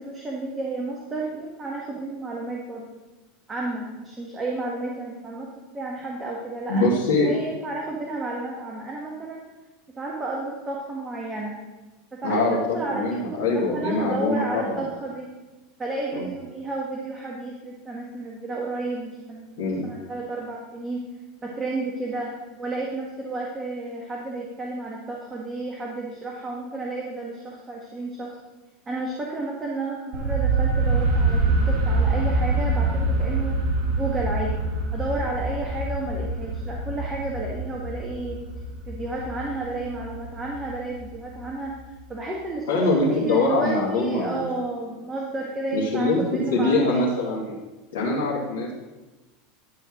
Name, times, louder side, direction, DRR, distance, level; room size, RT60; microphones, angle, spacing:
voice 1, 0.0-2.9 3.5-5.5 5.7-9.4 10.0-11.6 12.1-15.3 15.8-21.1 21.4-22.3 22.6-28.4 28.9-33.6 33.9-34.5 34.9-38.4 38.9-41.8 42.1-47.0, right 2 dB, 20° right, -2 dB, 1.7 m, -32 dB
voice 2, 6.7-7.3 12.2-14.8 16.1-16.3 19.6-19.8 42.7-44.5 45.7-47.5 47.9-48.7, left 2 dB, 70° left, -6 dB, 2.4 m, -23 dB
sound 1, 30.1-42.0, right 2 dB, 55° right, 2.4 m, -25 dB
11.5 x 4.4 x 6.2 m, 1.1 s
hypercardioid pair, 85°, 0 cm